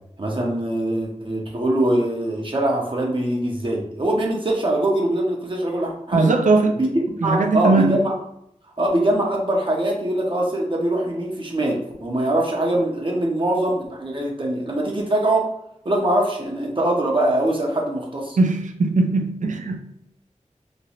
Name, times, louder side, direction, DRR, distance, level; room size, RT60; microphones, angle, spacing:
voice 1, 0.2-6.3 6.8-6.9 7.2-8.1 8.8-15.4 15.8-18.4, right 1 dB, 40° right, 0.7 m, -22 dB
voice 2, 6.1-6.8 7.2-8.0 18.4-19.8, right 3 dB, 85° right, 0.4 m, -19 dB
3.0 x 2.6 x 2.8 m
wide cardioid pair, 65°, 13 cm